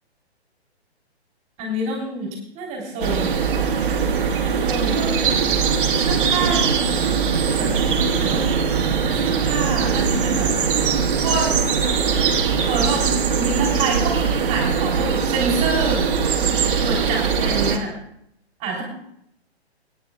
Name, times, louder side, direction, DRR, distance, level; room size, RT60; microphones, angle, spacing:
voice 1, 1.6-2.3 2.5-3.4 4.6-5.2 5.9-6.8 7.5-8.4 9.0-10.5 11.2-11.5 12.6-13.1 13.3-16.1 16.8-17.9 18.6-18.8, right 3 dB, 20° right, -2 dB, 3.4 m, -27 dB
sound 1, 3.0-17.8, right 6 dB, 50° right, 1.6 m, -21 dB
27.0 x 9.5 x 2.4 m, 0.73 s
figure-of-eight pair, 135°, 33 cm